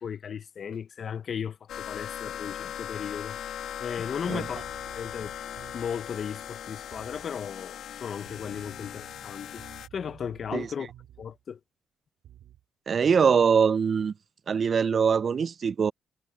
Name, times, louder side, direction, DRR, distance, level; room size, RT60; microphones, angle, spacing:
voice 1, 0.0-3.4 3.8-4.6 4.9-5.3 5.7-9.6 9.9-10.9 11.2-11.6, left 7 dB, 50° left, 0.6 m, -35 dB
sound 1, 1.7-9.9, left 10 dB, 75° left, 2.0 m, -39 dB
sound 2, 4.2-6.1 6.9-7.3 8.3-11.4 12.2-12.6, right 11 dB, 80° right, 2.3 m, -52 dB
voice 2, 12.9-14.1 14.5-15.9, right 6 dB, 45° right, 0.3 m, -23 dB
cardioid pair, 90°, 0 cm